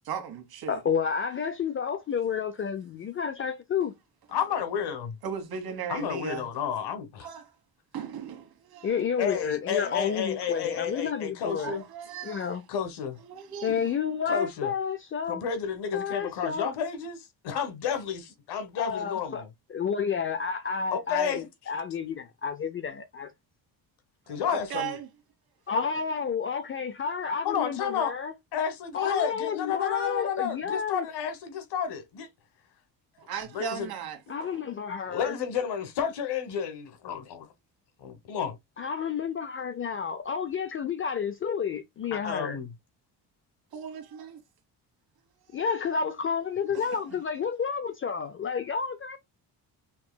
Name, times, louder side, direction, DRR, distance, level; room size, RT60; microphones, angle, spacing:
voice 1, 0.0-0.8 5.2-6.5 7.2-7.5 7.9-9.1 10.0-10.2 11.0-11.2 11.5-12.6 13.3-13.9 24.3-25.1 33.3-34.6 43.7-44.4 45.5-45.7 46.7-47.2, right 8 dB, 65° right, 1.5 m, -38 dB
voice 2, 0.7-3.9 8.8-11.7 12.2-12.6 13.6-15.4 15.9-16.7 18.8-19.4 19.7-23.3 25.7-28.3 28.9-31.1 34.3-35.3 38.8-42.6 45.5-49.2, left 6 dB, 30° left, 0.4 m, -30 dB
voice 3, 4.3-5.2 5.9-7.3 9.2-11.8 12.7-13.2 14.3-14.7 15.3-19.5 20.9-21.7 24.3-25.0 27.4-28.1 28.5-32.3 33.5-33.9 35.1-37.5 38.0-38.6 42.1-42.7, left 7 dB, 75° left, 1.3 m, -31 dB
5.9 x 2.9 x 2.2 m
cardioid pair, 160°, 40 cm